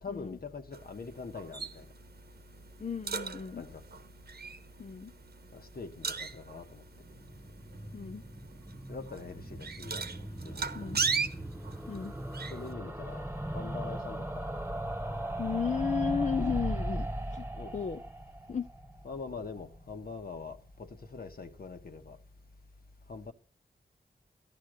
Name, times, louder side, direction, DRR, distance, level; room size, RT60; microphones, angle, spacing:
voice 1, 0.0-1.9 3.6-4.0 5.5-6.8 8.9-10.9 12.5-14.4 17.5-17.7 19.0-22.2 23.1-23.3, left 4 dB, 65° left, 1.6 m, -43 dB
sound 1, 0.7-12.7, right 5 dB, 80° right, 1.2 m, -39 dB
voice 2, 2.8-3.6 4.8-5.1 7.9-8.2 10.7-11.0 11.9-12.2 15.4-17.4 17.7-18.0 18.5-18.7, left 6 dB, 50° left, 0.7 m, -34 dB
sound 2, 7.0-20.0 20.3-20.4 20.6-20.7 20.9-21.0, right 1 dB, 10° right, 1.4 m, -38 dB
14.5 x 10.5 x 6.6 m
wide cardioid pair, 95°, 16 cm